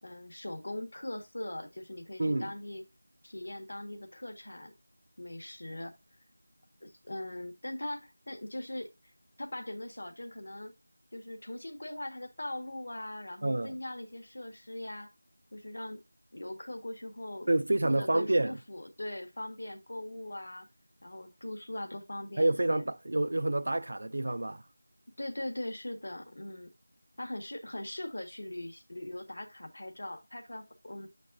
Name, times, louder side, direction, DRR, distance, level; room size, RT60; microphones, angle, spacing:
voice 1, 0.0-2.8 3.2-4.7 5.2-5.9 6.8-8.9 9.4-10.7 11.1-15.1 15.5-16.0 16.3-17.5 17.8-20.7 21.0-22.9 25.2-26.7 27.2-31.1, left 1 dB, 60° left, 1.6 m, -40 dB
voice 2, 2.2-2.5 13.4-13.8 17.5-18.6 22.4-24.6, right 2 dB, 55° right, 0.5 m, -28 dB
7.6 x 5.3 x 2.6 m
figure-of-eight pair, 175°, 0 cm